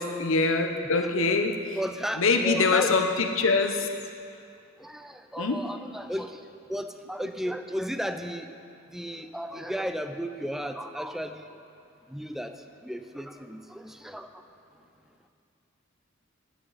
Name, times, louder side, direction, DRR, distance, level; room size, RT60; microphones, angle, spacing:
voice 1, 0.2-1.5 2.2-3.8 5.4-5.6, left 4 dB, 70° left, 5 dB, 0.9 m, -23 dB
voice 2, 1.8-3.1 4.8-6.4 6.7-8.5 8.9-11.6 12.1-12.6 12.8-14.3, equal, ahead, 8 dB, 0.5 m, -34 dB
15.5 x 11.0 x 4.2 m, 2.4 s
head